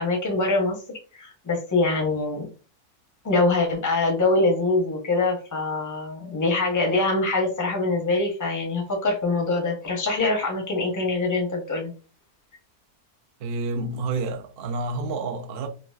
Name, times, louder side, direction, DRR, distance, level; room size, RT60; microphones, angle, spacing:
voice 1, 0.0-2.5 3.2-11.9, left 3 dB, 25° left, 0.4 m, -24 dB
voice 2, 13.4-15.7, right 3 dB, 80° right, 0.5 m, -29 dB
3.8 x 2.3 x 2.3 m
omnidirectional pair, 1.7 m